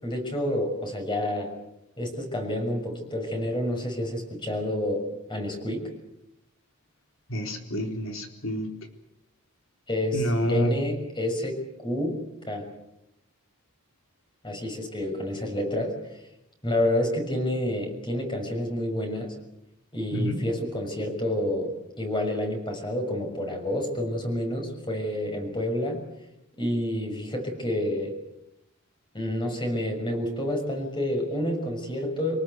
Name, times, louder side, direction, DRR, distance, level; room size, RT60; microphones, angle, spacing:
voice 1, 0.0-1.5 2.0-5.0 5.3-5.9 9.9-12.2 12.5-12.6 14.4-15.9 16.6-19.3 19.9-21.7 22.0-26.0 26.6-28.1 29.1-32.4, left 1 dB, 20° left, 3 dB, 6.3 m, -29 dB
voice 2, 7.3-8.7 10.1-10.7 20.1-20.4, equal, 65° left, 4 dB, 4.1 m, -28 dB
27.0 x 18.5 x 8.2 m, 0.86 s
head